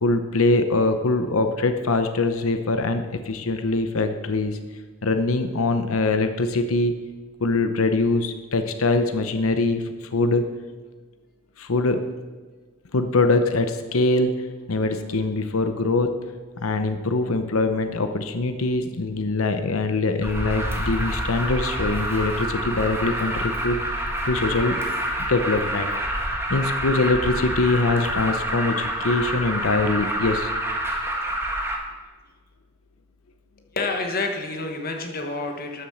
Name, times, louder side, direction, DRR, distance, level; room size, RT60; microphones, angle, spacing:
voice 1, 0.0-4.6 5.0-6.9 7.4-10.4 11.6-12.0 12.9-14.3 14.7-16.1 16.6-24.8 25.3-25.9 26.5-30.5, left 2 dB, 85° left, 8 dB, 0.8 m, -23 dB
Alarm, 20.2-31.8, right 1 dB, 10° right, 1.7 m, -27 dB
voice 2, 33.7-35.9, left 3 dB, 45° left, 3 dB, 1.3 m, -28 dB
13.0 x 7.3 x 6.4 m, 1.4 s
head